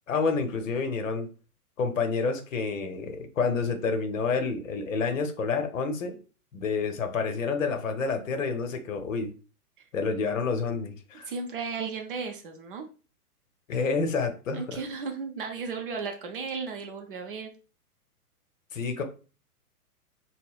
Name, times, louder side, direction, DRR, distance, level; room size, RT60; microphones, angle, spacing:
voice 1, 0.1-1.3 1.8-6.2 6.5-9.3 9.9-11.3 13.7-14.8 18.7-19.0, left 4 dB, 55° left, 6 dB, 0.8 m, -29 dB
voice 2, 11.2-12.9 14.5-17.5, right 5 dB, 35° right, 4 dB, 0.6 m, -35 dB
5.3 x 2.1 x 2.3 m, 0.35 s
figure-of-eight pair, 115°, 46 cm